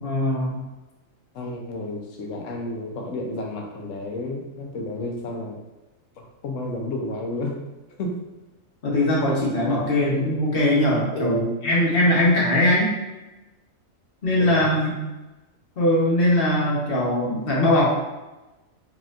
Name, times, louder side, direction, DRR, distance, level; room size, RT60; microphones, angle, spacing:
voice 1, 0.0-0.6 8.8-11.4 11.6-12.9 14.2-14.9 15.8-17.9, left 1 dB, 45° left, -4 dB, 1.1 m, -20 dB
voice 2, 1.3-5.6 6.4-7.5 8.0-8.2 11.1-11.6 14.4-14.7, left 1 dB, 75° left, 2 dB, 1.0 m, -30 dB
4.1 x 3.5 x 2.4 m, 1.1 s
omnidirectional pair, 1.4 m